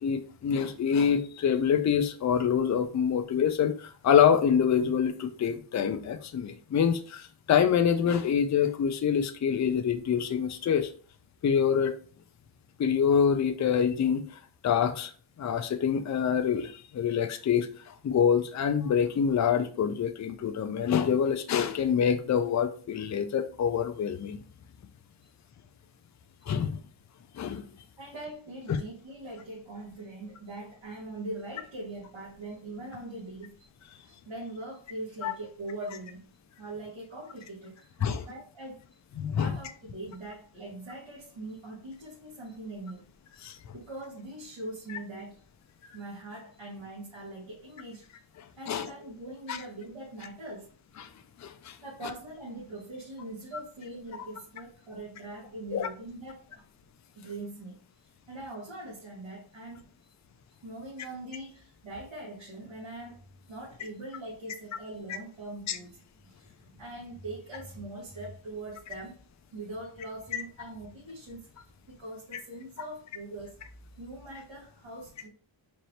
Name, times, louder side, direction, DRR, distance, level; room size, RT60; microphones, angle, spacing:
voice 1, 0.0-10.9 11.4-11.9 12.8-14.2 14.6-15.1 15.4-17.7 18.0-24.4 26.5-26.8 27.4-27.6 35.2-35.3 38.0-38.2 39.2-39.5 43.4-43.6 48.7-48.9 49.5-49.6 51.0-51.1 51.4-51.7 55.7-55.9 65.7-65.8 70.3-70.4, left 7 dB, 40° left, 0.4 m, -26 dB
voice 2, 28.0-33.7 34.0-36.2 36.6-39.0 39.4-43.1 43.3-43.4 43.7-45.4 45.9-48.1 48.6-50.7 51.8-56.6 57.1-60.1 60.6-69.2 69.5-73.5 74.0-75.3, right 2 dB, 70° right, 1.6 m, -42 dB
4.3 x 2.6 x 3.2 m
wide cardioid pair, 120°, 49 cm